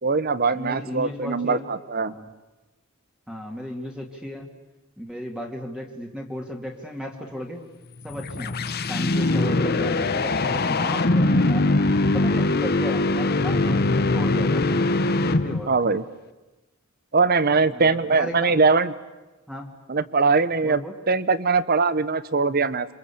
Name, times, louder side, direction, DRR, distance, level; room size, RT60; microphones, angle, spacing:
voice 1, 0.0-2.1 15.7-16.1 17.1-18.9 19.9-22.9, right 4 dB, 45° right, 15 dB, 1.0 m, -21 dB
voice 2, 0.5-1.7 2.1-2.3 3.3-4.5 5.0-7.6 8.0-8.6 8.9-11.6 12.1-14.6 15.2-15.7 17.7-18.5 19.5-19.7 20.6-20.9, equal, 5° right, 1 dB, 2.5 m, -35 dB
sound 1, 8.0-15.8, left 2 dB, 50° left, 1.1 m, -22 dB
27.5 x 25.0 x 8.5 m, 1.1 s
head